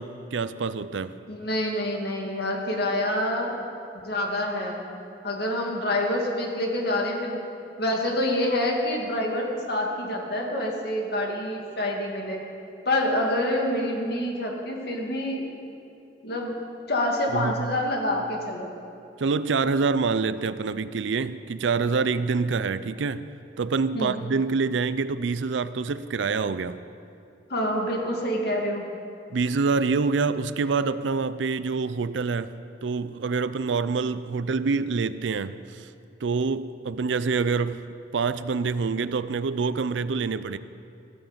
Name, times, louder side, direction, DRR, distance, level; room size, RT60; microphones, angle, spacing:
voice 1, 0.0-1.2 17.3-17.7 19.2-23.3 23.6-26.8 29.3-35.9 36.2-37.8 38.1-40.6, right 4 dB, 75° right, 0.5 m, -26 dB
voice 2, 1.3-3.6 4.0-4.8 5.2-7.4 7.8-12.4 12.9-15.5 16.2-16.5 16.9-18.7 23.9-24.2 27.5-28.9, left 1 dB, 55° left, 2.3 m, -27 dB
15.0 x 9.1 x 7.4 m
head